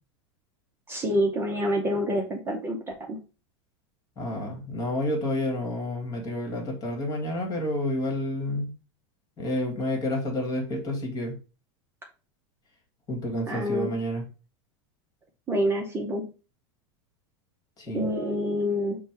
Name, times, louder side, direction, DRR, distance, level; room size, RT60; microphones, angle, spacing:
voice 1, 0.9-2.8 3.1-3.2 13.5-14.0 15.5-16.3 17.9-19.0, equal, 15° right, 0 dB, 0.7 m, -27 dB
voice 2, 4.2-8.7 9.4-11.3 13.1-14.2 17.8-18.1, left 1 dB, 25° left, 1 dB, 1.5 m, -29 dB
5.2 x 2.2 x 4.4 m, 0.34 s
supercardioid pair, 140°, 15 cm